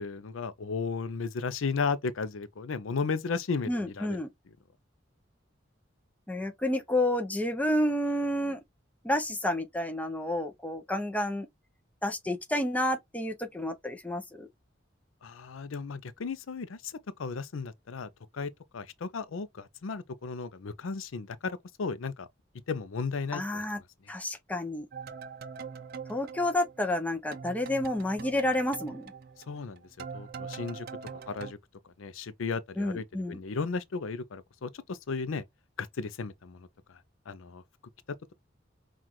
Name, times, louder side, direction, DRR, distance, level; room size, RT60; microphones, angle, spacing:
voice 1, 0.0-4.2 15.2-16.9 17.2-18.1 18.3-21.5 21.8-22.3 22.7-23.6 29.5-29.8 30.1-30.9 31.3-31.6 32.0-35.4 35.8-36.7 37.3-37.6, left 4 dB, 85° left, 0.5 m, -34 dB
voice 2, 3.7-4.3 6.3-8.6 9.0-11.5 12.0-14.5 23.3-23.8 24.1-24.9 26.1-29.1 32.8-33.4, left 1 dB, 10° left, 0.6 m, -30 dB
sound 1, 24.9-27.1 27.3-31.5, right 5 dB, 50° right, 0.5 m, -43 dB
5.7 x 2.4 x 3.0 m
head